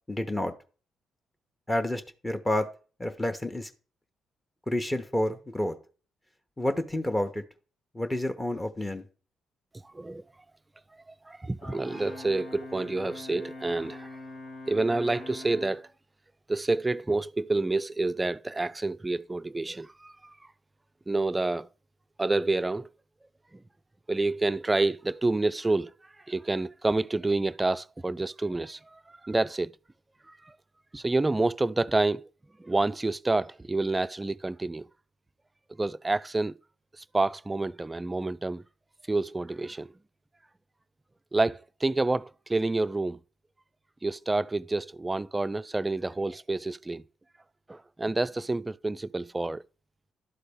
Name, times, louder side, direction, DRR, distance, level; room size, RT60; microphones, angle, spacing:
voice 1, 0.1-0.5 1.7-2.7 3.0-3.7 4.7-5.8 6.6-7.4 7.9-9.0, left 1 dB, 15° left, 1.0 m, -29 dB
voice 2, 11.3-14.1 14.7-15.9 16.5-20.3 21.1-21.7 22.2-22.9 23.5-23.6 24.1-25.9 26.3-29.7 30.3-30.5 30.9-32.3 32.6-34.9 35.8-36.6 37.0-38.6 39.1-39.9 41.3-43.2 44.0-47.0 47.7-49.6, right 2 dB, 20° right, 0.3 m, -28 dB
Brass instrument, 11.6-15.8, left 2 dB, 50° left, 1.4 m, -43 dB
12.0 x 4.0 x 3.5 m
hypercardioid pair, 40°, 0 cm